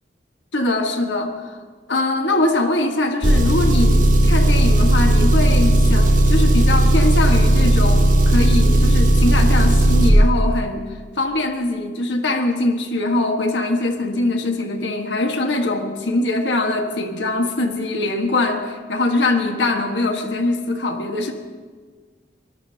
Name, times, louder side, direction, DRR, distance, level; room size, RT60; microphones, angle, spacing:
voice 1, 0.5-1.6 1.9-10.9 11.2-21.3, left 2 dB, 85° left, 3 dB, 1.6 m, -22 dB
Engine, 3.2-10.1, right 1 dB, 45° right, 2.2 m, -15 dB
24.5 x 20.0 x 2.9 m, 1.5 s
head